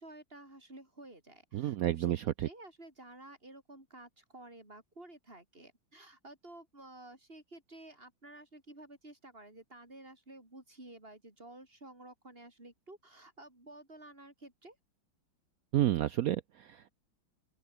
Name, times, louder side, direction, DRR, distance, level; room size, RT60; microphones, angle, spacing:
voice 1, 0.0-2.1 2.4-14.8, right 1 dB, 25° right, 7.9 m, -52 dB
voice 2, 1.5-2.5 15.7-16.9, right 13 dB, 85° right, 0.7 m, -30 dB
open air
omnidirectional pair, 2.2 m